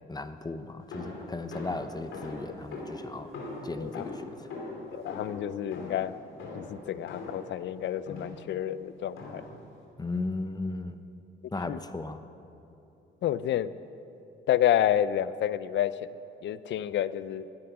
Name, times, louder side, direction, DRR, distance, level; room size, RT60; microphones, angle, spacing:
voice 1, 0.1-3.3 3.6-4.3 10.0-10.9 11.5-12.2, left 3 dB, 20° left, 10 dB, 0.7 m, -36 dB
sound 1, 0.9-7.6 8.1-8.5 9.2-9.6, left 2 dB, 85° left, 2.9 m, -41 dB
voice 2, 4.9-6.1 6.5-9.4 11.7-11.8 13.2-13.8 14.5-16.1 16.4-17.5, left 11 dB, 65° left, 16 dB, 0.5 m, -29 dB
16.0 x 9.8 x 6.0 m, 2.9 s
cardioid pair, 90°, 20 cm